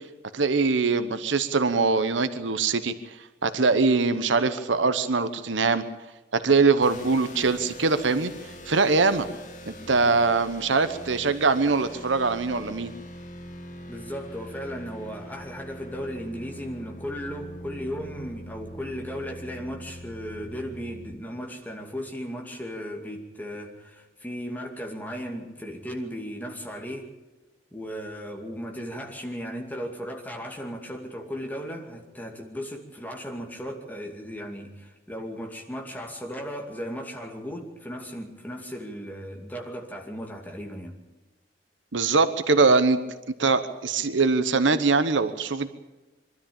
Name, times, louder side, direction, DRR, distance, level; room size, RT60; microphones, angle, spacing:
voice 1, 0.3-2.9 3.4-5.8 6.3-8.3 8.7-9.3 9.7-12.9 41.9-43.0 43.4-45.7, right 4 dB, 85° right, 11 dB, 1.0 m, -22 dB
sound 1, 6.8-21.1, equal, 40° left, 2.1 m, -43 dB
voice 2, 13.9-27.1 27.7-41.0, equal, 10° left, 1 dB, 2.5 m, -36 dB
23.5 x 13.0 x 8.7 m, 1.1 s
head